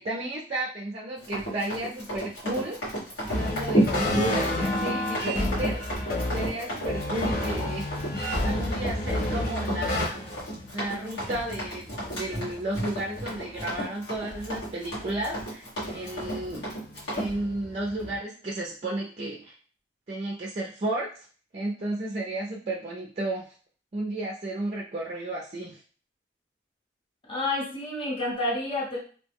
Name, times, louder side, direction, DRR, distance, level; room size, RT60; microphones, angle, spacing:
voice 1, 0.0-2.9 3.2-5.8 6.3-8.1 8.4-10.4 10.7-16.7 17.1-19.5 20.1-21.1 21.5-23.5 23.9-25.8, right 1 dB, 40° right, -2 dB, 0.4 m, -33 dB
Run, 1.2-17.3, right 1 dB, 75° left, 1.4 m, -32 dB
sound 1, 3.3-13.6 14.3-15.4 15.8-18.2, left 1 dB, 55° left, 0.6 m, -32 dB
voice 2, 27.3-29.0, left 2 dB, 30° left, -3 dB, 0.9 m, -29 dB
2.7 x 2.1 x 3.4 m, 0.40 s
head